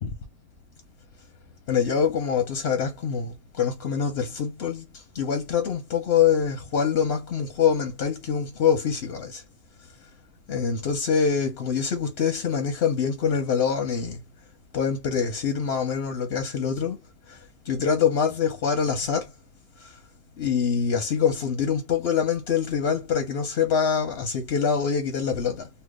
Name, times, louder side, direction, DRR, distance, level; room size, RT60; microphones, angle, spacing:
voice 1, 1.7-9.4 10.5-14.2 14.7-17.0 17.3-17.4 17.7-19.3 19.8-20.0 20.4-25.7, left 7 dB, 55° left, 0.7 m, -25 dB
2.8 x 2.3 x 3.5 m
omnidirectional pair, 1.8 m